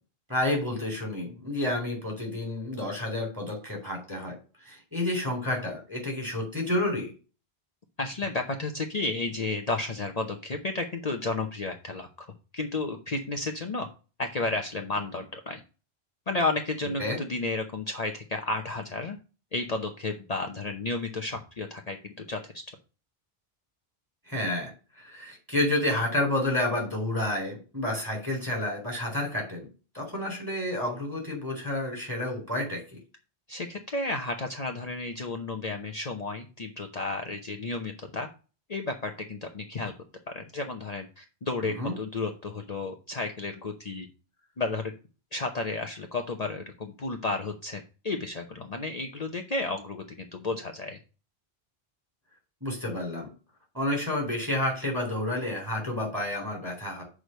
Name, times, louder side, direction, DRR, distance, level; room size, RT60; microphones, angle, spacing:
voice 1, 0.3-4.4 4.6-7.1 17.0-17.2 24.3-24.7 25.0-29.7 29.9-33.0 41.6-41.9 52.6-53.3 53.7-57.0, left 1 dB, 20° right, 0 dB, 3.9 m, -30 dB
voice 2, 8.0-12.3 12.5-13.9 14.2-15.6 16.3-19.2 19.5-22.6 33.5-38.3 38.7-39.9 40.3-44.1 44.6-44.9 45.3-51.0, left 3 dB, 40° left, 4 dB, 0.9 m, -32 dB
6.3 x 4.9 x 6.6 m, 0.34 s
omnidirectional pair, 1.0 m